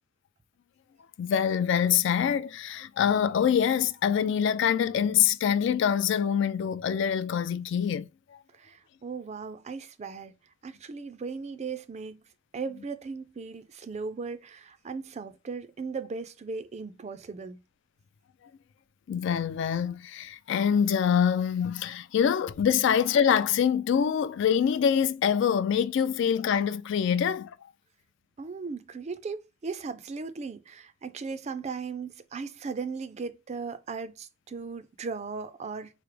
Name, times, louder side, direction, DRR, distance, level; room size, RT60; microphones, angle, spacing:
voice 1, 1.2-8.1 19.1-27.5, left 8 dB, 60° left, 0.3 m, -25 dB
voice 2, 8.6-10.3 10.6-12.2 12.5-17.6 28.4-35.9, right 4 dB, 35° right, 0.3 m, -37 dB
4.6 x 2.0 x 3.1 m
head